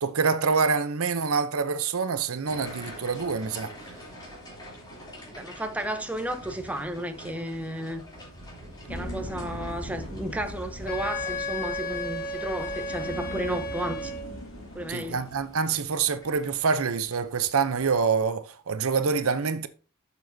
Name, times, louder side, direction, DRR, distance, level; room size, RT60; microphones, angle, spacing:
voice 1, 0.0-3.7 14.9-19.7, right 5 dB, 70° right, 0.7 m, -26 dB
sound 1, 2.4-18.1, equal, 20° left, 3.2 m, -46 dB
voice 2, 5.3-8.0 8.9-14.1 14.7-15.2, right 1 dB, 5° right, 0.8 m, -33 dB
sound 2, 8.9-15.5, left 1 dB, 65° left, 2.1 m, -40 dB
Wind instrument woodwind instrument, 10.9-14.4, left 1 dB, 40° left, 1.5 m, -33 dB
10.5 x 7.0 x 2.7 m
head